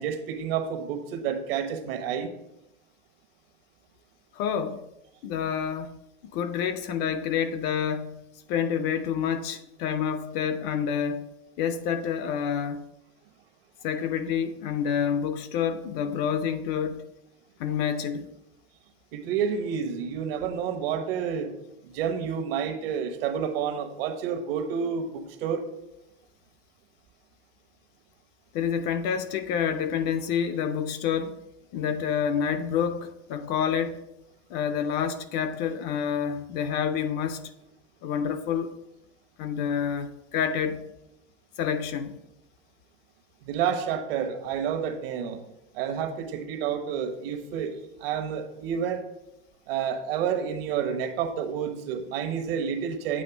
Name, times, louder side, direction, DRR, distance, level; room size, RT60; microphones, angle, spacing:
voice 1, 0.0-2.3 19.1-21.5 21.8-25.6 43.4-45.4 45.7-49.0 49.7-53.2, right 7 dB, 70° right, 1.1 m, -29 dB
voice 2, 4.3-4.8 5.2-11.3 11.6-12.9 13.8-17.1 17.6-18.3 28.5-31.4 31.7-34.0 34.5-37.5 38.0-38.7 39.4-40.9 41.6-42.2, left 7 dB, 35° left, 0.4 m, -28 dB
8.4 x 3.1 x 5.9 m
supercardioid pair, 160°, 30 cm